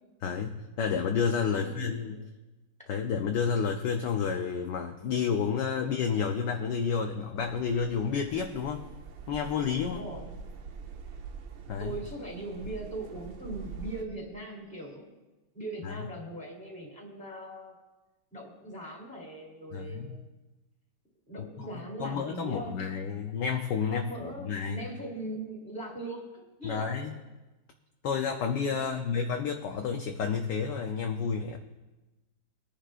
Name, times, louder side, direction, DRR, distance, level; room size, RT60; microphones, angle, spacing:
voice 1, 0.2-2.2 2.9-8.9 9.3-10.0 11.7-11.9 15.8-16.0 19.7-20.2 21.6-21.7 22.0-24.8 26.6-27.2 28.0-31.6, left 6 dB, 65° left, 4 dB, 1.2 m, -30 dB
voice 2, 1.5-2.3 5.7-5.8 9.8-10.4 11.8-15.2 15.5-17.8 18.3-20.3 21.3-23.2 23.9-27.2 28.6-29.1, right 1 dB, 5° left, -3 dB, 2.8 m, -40 dB
sound 1, 7.4-14.0, right 5 dB, 70° right, 1.6 m, -44 dB
21.0 x 10.0 x 2.5 m, 1.1 s
omnidirectional pair, 2.3 m